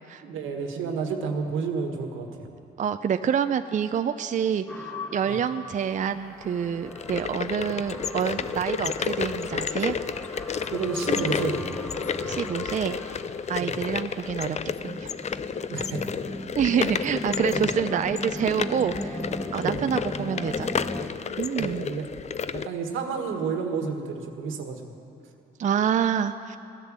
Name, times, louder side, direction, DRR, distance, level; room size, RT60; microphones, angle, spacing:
voice 1, 0.2-2.5 5.3-5.4 10.7-11.8 13.6-13.7 15.6-16.1 16.9-17.0 17.5-17.7 19.6-19.9 21.6-22.1 22.5-24.9, right 5 dB, 85° right, 4 dB, 1.6 m, -31 dB
voice 2, 2.8-10.0 12.3-13.0 13.5-14.6 14.8-15.1 16.6-19.2 19.5-20.7 21.4-21.9 25.6-26.6, right 8 dB, 40° right, 9 dB, 0.5 m, -27 dB
sound 1, 4.7-21.1, left 1 dB, 5° left, 0.9 m, -38 dB
sound 2, 6.8-22.7, left 6 dB, 35° left, 0.5 m, -31 dB
16.5 x 10.5 x 7.5 m, 2.7 s
cardioid pair, 90°, 20 cm